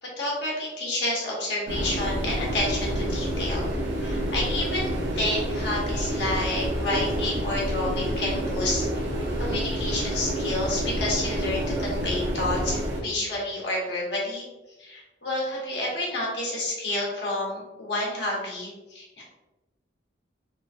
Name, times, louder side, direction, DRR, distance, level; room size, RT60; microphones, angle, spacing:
voice 1, 0.0-3.6 4.0-9.0 9.4-14.4 14.8-19.2, left 1 dB, 70° left, -4 dB, 1.1 m, -29 dB
sound 1, 1.7-13.0, equal, 85° right, 0.8 m, -28 dB
3.7 x 2.5 x 2.5 m, 1.0 s
head